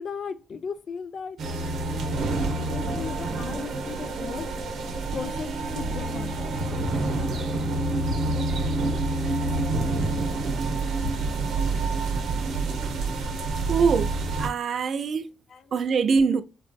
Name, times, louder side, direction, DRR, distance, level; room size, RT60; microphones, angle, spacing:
voice 1, 0.0-1.4 2.5-4.5 5.1-7.0 15.5-15.7, left 6 dB, 55° left, 0.4 m, -37 dB
sound 1, 1.4-14.5, right 2 dB, 80° right, 0.7 m, -27 dB
voice 2, 13.7-14.1 14.4-15.3 15.7-16.4, right 5 dB, 55° right, 0.3 m, -23 dB
3.3 x 2.6 x 2.2 m
cardioid pair, 110°, 0 cm